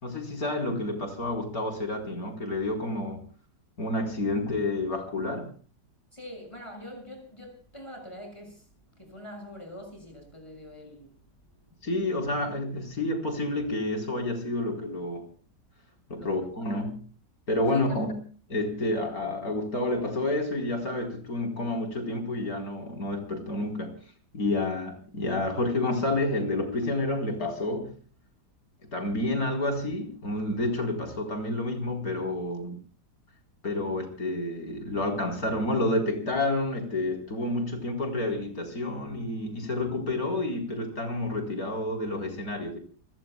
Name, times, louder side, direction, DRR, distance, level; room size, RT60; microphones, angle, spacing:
voice 1, 0.0-3.2 3.8-5.5 11.8-15.3 16.1-17.0 17.5-18.1 18.5-23.9 24.3-27.9 28.8-32.8 33.6-42.8, left 2 dB, 60° left, 4.6 m, -29 dB
voice 2, 6.1-8.7 9.0-11.2 12.0-12.3 16.1-16.8 17.7-17.8, left 1 dB, 15° left, 6.9 m, -44 dB
29.5 x 18.0 x 2.3 m
omnidirectional pair, 1.8 m